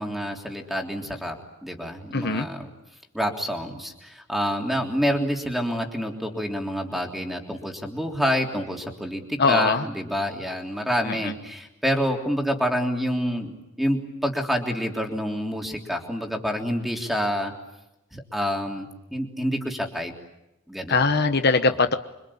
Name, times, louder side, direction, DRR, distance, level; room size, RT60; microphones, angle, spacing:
voice 1, 0.0-1.4 1.6-2.7 3.1-13.5 13.8-17.5 18.1-20.1 20.7-21.1 21.7-21.8, equal, ahead, 1 dB, 3.4 m, -27 dB
voice 2, 2.1-2.5 9.4-9.8 11.0-11.3 20.9-22.0, left 4 dB, 50° left, 8 dB, 1.1 m, -21 dB
26.5 x 25.5 x 8.7 m, 0.91 s
head